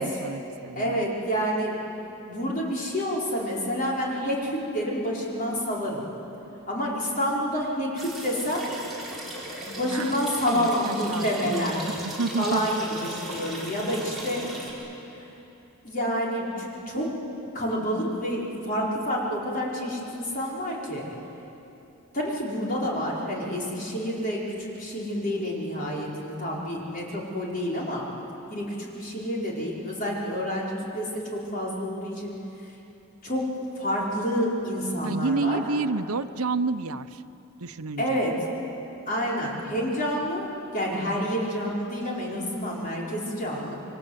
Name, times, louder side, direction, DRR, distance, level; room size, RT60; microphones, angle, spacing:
voice 1, 0.0-1.0 9.9-10.2 10.5-11.5 12.0-12.7 35.0-37.2 37.6-38.2, right 3 dB, 75° right, 10 dB, 0.9 m, -30 dB
voice 2, 0.7-1.8 2.3-6.0 6.7-8.6 9.7-11.9 12.4-14.5 15.2-15.3 15.8-17.2 17.5-21.1 22.1-28.1 28.5-32.3 33.2-35.6 38.0-38.3 39.1-40.5 40.7-43.7, equal, 40° left, -4 dB, 5.0 m, -28 dB
sound 1, 8.0-14.7, right 1 dB, ahead, 5.5 m, -37 dB
28.0 x 24.0 x 8.2 m, 2.9 s
head